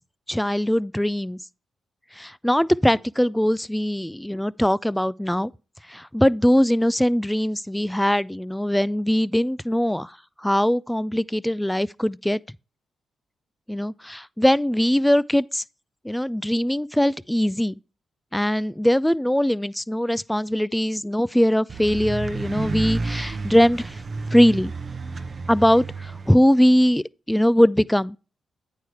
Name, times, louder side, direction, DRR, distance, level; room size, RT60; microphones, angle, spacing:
voice 1, 0.3-1.4 2.2-5.5 5.9-10.1 10.4-12.4 13.7-15.6 16.0-17.8 18.3-24.0 24.3-24.7 25.5-28.2, equal, 5° left, 0.3 m, -21 dB
sound 1, 21.7-26.3, right 3 dB, 45° right, 0.8 m, -31 dB
8.9 x 4.7 x 4.6 m
supercardioid pair, 50°, 0 cm